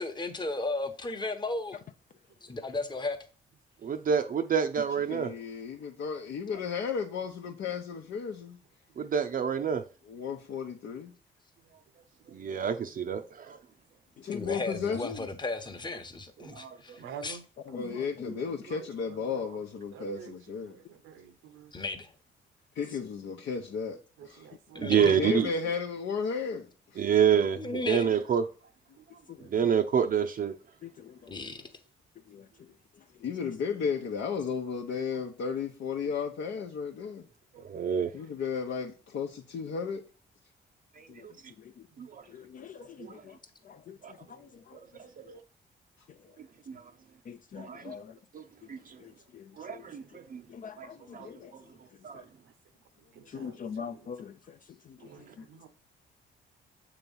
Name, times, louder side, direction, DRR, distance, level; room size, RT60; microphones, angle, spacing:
voice 1, 0.0-1.8 2.4-3.2 14.3-17.4 21.7-22.1 24.7-25.1 27.6-28.1 31.3-31.6, left 2 dB, 20° left, 1.0 m, -35 dB
voice 2, 3.8-5.3 9.0-9.8 12.3-13.6 16.5-16.8 17.0-17.1 24.8-25.5 27.0-28.4 29.5-30.6 37.5-38.1 41.0-41.3 42.0-42.3 43.0-43.1 44.0-44.1 45.0-45.4 46.7-46.9 47.6-47.9 48.3-48.4 48.7-49.0 49.6-50.4 50.8-50.9 51.1-51.6 52.0-52.2, right 7 dB, 45° right, 0.5 m, -28 dB
voice 3, 5.1-8.6 10.1-11.1 14.2-15.3 17.7-20.8 22.7-24.0 24.2-24.5 25.0-27.0 33.2-37.3 38.1-40.0, left 6 dB, 70° left, 0.8 m, -34 dB
voice 4, 13.1-13.6 17.0-19.6 19.9-21.8 24.2-25.3 32.5-32.6 42.0-42.1 43.0-43.1 44.1-44.5 50.0-50.3 53.1-54.1 55.0-55.7, right 7 dB, 85° right, 0.8 m, -50 dB
voice 5, 17.7-18.0 30.8-31.1 32.3-32.4 41.1-41.2 42.3-43.4 43.7-44.0 44.4-44.8 47.3-48.1 49.0-49.8 50.5-51.5 53.3-54.3, left 6 dB, 45° left, 0.4 m, -43 dB
7.0 x 3.0 x 5.3 m
cardioid pair, 90°, 20 cm